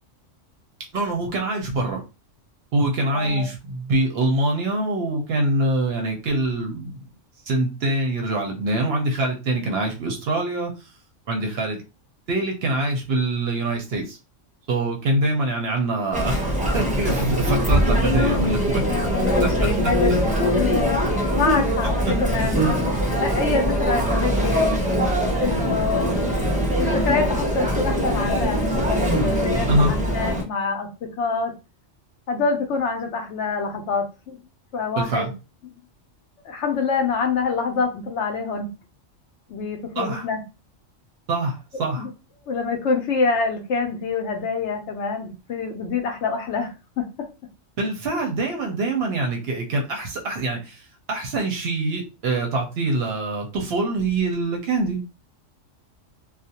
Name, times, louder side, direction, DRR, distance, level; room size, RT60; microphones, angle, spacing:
voice 1, 0.9-2.0 2.7-7.0 7.5-10.9 11.3-11.8 12.3-14.2 14.7-18.8 19.4-19.9 22.1-22.2 29.7-29.9 34.9-35.3 40.0-40.3 41.3-42.1 47.8-55.0, right 2 dB, 60° right, 2 dB, 0.7 m, -24 dB
voice 2, 3.1-3.5 18.8-21.0 21.3-24.7 25.4-26.2 26.8-28.6 28.9-29.1 29.4-31.5 32.3-34.4 34.7-35.3 36.4-38.7 39.5-40.4 42.0-42.1 42.5-46.7 47.0-47.1, left 4 dB, 70° left, 4 dB, 0.8 m, -26 dB
Chatter, 16.1-30.4, equal, 10° right, 0.3 m, -22 dB
2.4 x 2.1 x 2.7 m, 0.29 s
omnidirectional pair, 1.3 m